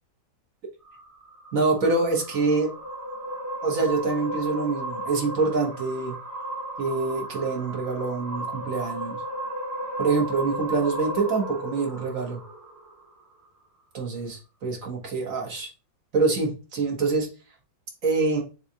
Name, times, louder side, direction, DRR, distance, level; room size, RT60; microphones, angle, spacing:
sound 1, 0.8-13.3, right 1 dB, 30° right, 0.3 m, -35 dB
voice 1, 1.5-2.7 3.6-6.1 6.8-9.2 10.0-12.4 13.9-15.7 16.1-17.3 18.0-18.4, right 3 dB, 50° right, 0 dB, 1.5 m, -25 dB
7.2 x 2.5 x 2.7 m, 0.32 s
omnidirectional pair, 1.9 m